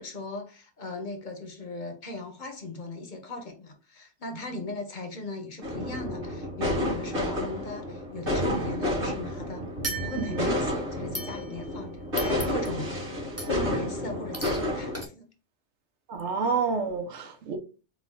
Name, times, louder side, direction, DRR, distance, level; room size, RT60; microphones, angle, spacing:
voice 1, 0.0-9.7 10.0-15.2, left 2 dB, 45° left, 0.9 m, -38 dB
sound 1, 5.6-15.0, left 1 dB, 50° right, 2.3 m, -30 dB
sound 2, 9.8-10.6 11.1-11.8 12.2-12.9 13.4-13.7 14.3-14.7 14.9-15.1, right 1 dB, 15° right, 0.8 m, -37 dB
voice 2, 16.1-17.6, right 5 dB, 75° right, 1.1 m, -29 dB
4.7 x 2.3 x 3.6 m
omnidirectional pair, 1.2 m